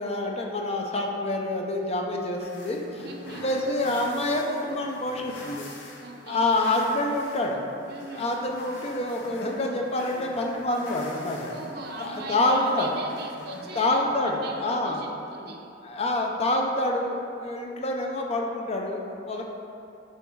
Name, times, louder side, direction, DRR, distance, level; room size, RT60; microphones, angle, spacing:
voice 1, 0.0-3.1 3.4-5.7 6.3-7.6 8.1-11.5 12.0-12.9 13.8-15.0 15.8-19.4, left 2 dB, 35° left, 1 dB, 0.5 m, -27 dB
sound 1, 2.4-14.6, left 2 dB, 75° left, 0.9 m, -45 dB
voice 2, 3.0-3.5 6.0-6.4 7.9-8.3 11.5-15.6, right 2 dB, 55° right, 1 dB, 0.7 m, -39 dB
5.7 x 4.0 x 4.6 m, 2.6 s
head